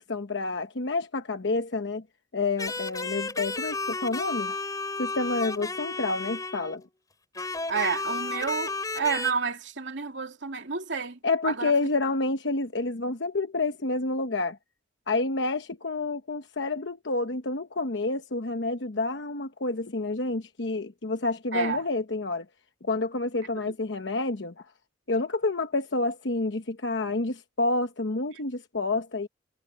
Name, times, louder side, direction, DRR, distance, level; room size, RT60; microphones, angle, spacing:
voice 1, 0.0-2.0 2.3-4.6 5.0-6.8 11.2-14.6 15.1-22.5 22.8-24.5 25.1-29.3, left 3 dB, 70° left, 1.0 m, -29 dB
sound 1, 2.6-6.8 7.3-9.3, left 3 dB, 20° left, 4.3 m, -33 dB
voice 2, 7.7-11.2 11.4-11.7 21.5-21.8, right 5 dB, 70° right, 2.7 m, -30 dB
head